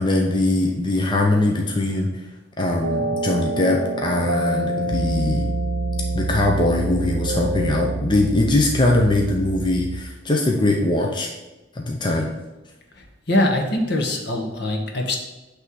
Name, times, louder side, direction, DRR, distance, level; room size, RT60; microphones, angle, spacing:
voice 1, 0.0-2.2 2.6-5.5 6.1-11.3 11.7-12.3, left 2 dB, 25° left, 1 dB, 0.7 m, -21 dB
sound 1, 2.8-8.0, right 1 dB, 70° right, 0.8 m, -27 dB
Piano, 4.9-10.0, right 4 dB, 45° right, 0.4 m, -28 dB
voice 2, 12.9-15.2, left 1 dB, 65° left, 2 dB, 1.3 m, -23 dB
8.4 x 3.4 x 6.3 m, 1.1 s
head